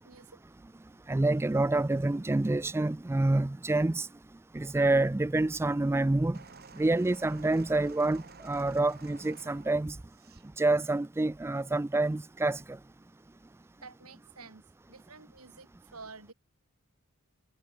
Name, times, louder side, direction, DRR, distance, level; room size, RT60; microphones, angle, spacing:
voice 1, 0.0-1.0 13.8-14.6 14.9-16.3, right 4 dB, 75° right, 4.9 m, -51 dB
voice 2, 1.1-4.1 4.5-6.4 6.8-10.0 10.6-12.8, right 2 dB, 10° right, 0.3 m, -27 dB
sound 1, 6.3-10.5 11.4-11.5, right 4 dB, 45° right, 4.8 m, -52 dB
head